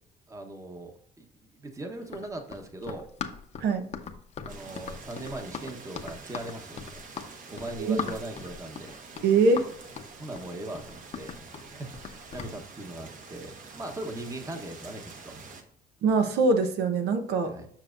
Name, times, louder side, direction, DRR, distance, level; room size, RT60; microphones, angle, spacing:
voice 1, 0.3-3.1 4.4-7.1 7.5-9.0 10.2-11.3 11.7-15.4 17.4-17.7, right 2 dB, 20° right, 4 dB, 1.1 m, -40 dB
Run, 2.0-12.6, left 6 dB, 40° left, 0.8 m, -39 dB
sound 1, 4.5-15.6, right 4 dB, 50° right, 1.2 m, -47 dB
voice 2, 9.2-9.7 16.0-17.5, right 3 dB, 75° right, 7 dB, 0.9 m, -23 dB
7.4 x 6.1 x 2.5 m, 0.64 s
cardioid pair, 110°, 17 cm